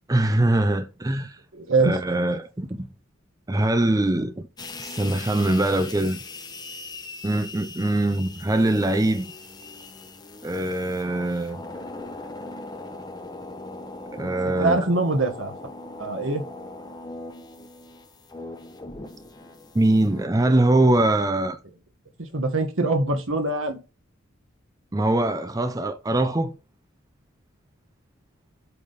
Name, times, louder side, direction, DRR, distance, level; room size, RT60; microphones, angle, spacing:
voice 1, 0.1-1.4 1.8-2.9 3.5-4.3 4.8-6.2 7.2-9.3 10.4-11.6 14.1-14.9 19.7-21.6 24.9-26.5, right 1 dB, 20° right, 0.5 m, -22 dB
voice 2, 1.5-2.0 14.2-15.5 16.0-16.4 22.2-23.8, right 2 dB, 85° right, 1.5 m, -24 dB
sound 1, 4.6-20.3, left 2 dB, 20° left, 1.0 m, -40 dB
8.5 x 3.5 x 4.0 m
head